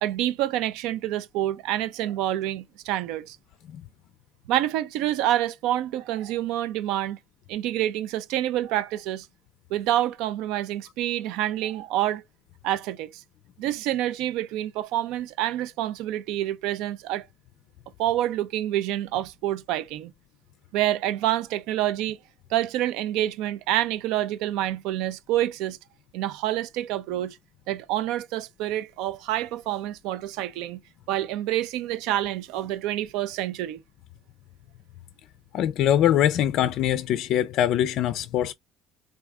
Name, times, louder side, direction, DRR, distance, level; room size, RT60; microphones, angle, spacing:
voice 1, 0.0-3.4 4.5-7.2 7.5-9.3 9.7-12.2 12.6-13.2 13.6-17.3 18.0-20.1 20.7-22.2 22.5-25.8 26.1-27.4 27.7-30.8 31.1-33.8, right 13 dB, 80° right, 0.4 m, -27 dB
voice 2, 35.5-38.5, left 11 dB, 70° left, 0.3 m, -22 dB
3.5 x 2.6 x 3.3 m
supercardioid pair, 70°, 0 cm